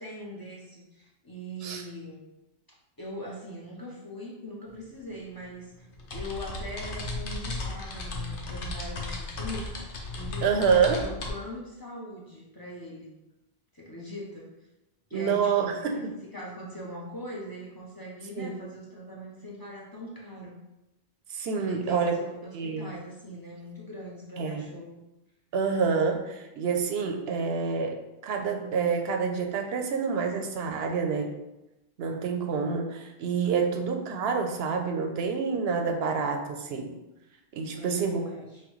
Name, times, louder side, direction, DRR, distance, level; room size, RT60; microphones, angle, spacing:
voice 1, 0.0-2.2 3.0-5.9 6.1-9.8 10.1-13.1 13.7-14.5 15.1-16.0 16.3-20.6 21.5-25.0 33.6-33.8 37.7-38.6, equal, 25° left, -4 dB, 0.7 m, -41 dB
sound 1, 4.7-4.8 5.1-11.3, left 2 dB, 60° left, 0.8 m, -35 dB
voice 2, 10.4-11.0 15.1-16.1 18.3-18.6 21.3-22.2 22.5-22.9 24.4-24.6 25.5-31.3 32.0-36.9 37.5-38.3, right 5 dB, 80° right, 4 dB, 0.8 m, -27 dB
5.7 x 2.2 x 3.1 m, 0.94 s
omnidirectional pair, 1.0 m